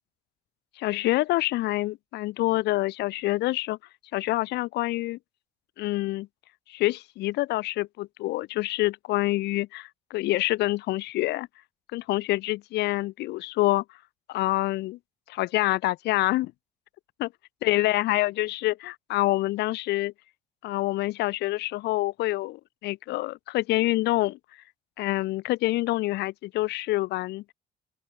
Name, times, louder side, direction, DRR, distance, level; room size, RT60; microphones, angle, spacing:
voice 1, 0.8-3.8 4.1-5.2 5.8-6.3 6.7-11.5 11.9-13.8 14.3-15.0 15.3-16.5 17.2-17.3 17.6-20.1 20.6-24.4 25.0-27.4, left 18 dB, 85° left, 3.6 m, -26 dB
open air
cardioid pair, 110°, 17 cm